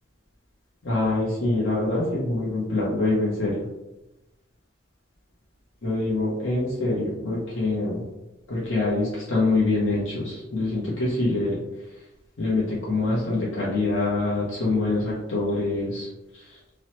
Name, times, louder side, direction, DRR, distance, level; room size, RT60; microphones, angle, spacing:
voice 1, 0.8-3.6 5.8-8.0 8.5-11.6 12.4-16.1 16.3-16.4, left 2 dB, 60° left, -7 dB, 0.7 m, -25 dB
2.9 x 2.0 x 2.9 m, 0.98 s
head